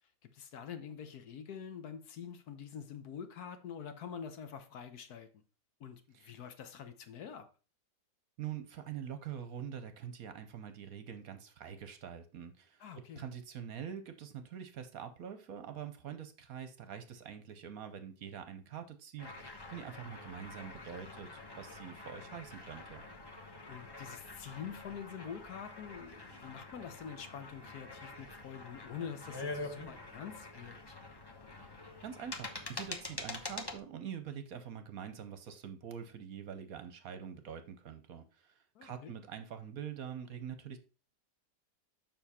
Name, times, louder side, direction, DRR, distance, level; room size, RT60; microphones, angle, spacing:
voice 1, 0.3-5.3 5.8-7.5 12.8-13.2 23.7-31.0 38.7-39.1, left 7 dB, 65° left, 1.3 m, -46 dB
voice 2, 8.4-23.0 32.0-40.8, right 8 dB, 65° right, 1.1 m, -45 dB
sound 1, 19.2-33.8, left 2 dB, 20° left, 0.6 m, -46 dB
7.0 x 5.8 x 4.2 m
omnidirectional pair, 1.9 m